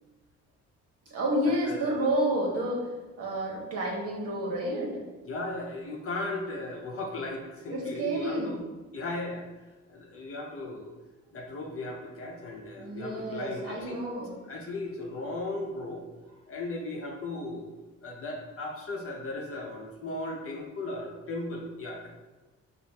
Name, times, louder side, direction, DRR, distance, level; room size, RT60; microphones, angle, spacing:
voice 1, 1.1-2.9 3.2-5.0 7.7-8.6 12.8-14.4, right 1 dB, 55° right, -2 dB, 1.2 m, -30 dB
voice 2, 1.6-2.1 5.2-8.6 8.9-9.5 9.9-10.9 11.3-14.0 14.5-16.0 16.5-17.7 18.0-22.1, left 2 dB, 45° left, 0 dB, 0.9 m, -36 dB
5.0 x 2.2 x 2.9 m, 1.2 s
cardioid pair, 90°, 30 cm